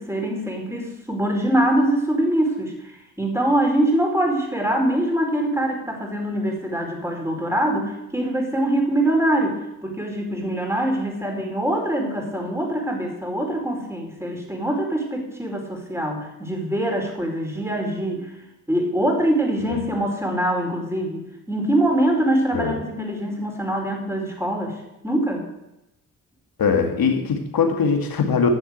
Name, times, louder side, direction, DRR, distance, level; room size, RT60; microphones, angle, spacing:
voice 1, 0.0-18.3 18.7-24.7 25.0-25.4, right 1 dB, 5° right, 1 dB, 4.7 m, -23 dB
voice 2, 26.6-28.5, left 5 dB, 60° left, 4 dB, 2.3 m, -21 dB
10.5 x 7.2 x 8.2 m, 0.91 s
hypercardioid pair, 45°, 41 cm